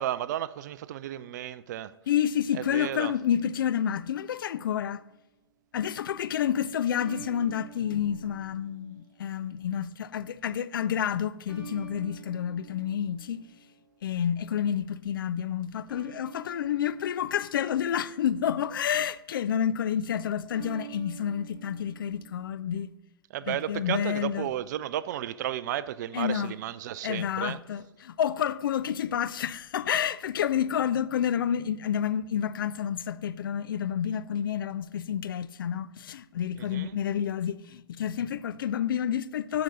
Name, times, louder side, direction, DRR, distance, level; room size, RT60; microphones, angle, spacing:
voice 1, 0.0-1.9 2.5-3.1 23.3-27.6 36.6-37.0, right 12 dB, 45° right, 0.4 m, -33 dB
voice 2, 2.1-5.0 5.7-13.4 14.0-22.9 23.5-24.5 26.1-26.5 27.0-39.6, left 9 dB, 60° left, 0.4 m, -29 dB
sound 1, 3.3-4.7 6.9-9.4 11.5-14.1 15.9-18.4 20.5-22.8, right 7 dB, 5° right, 3.6 m, -48 dB
13.5 x 5.0 x 4.1 m
figure-of-eight pair, 110°, 13 cm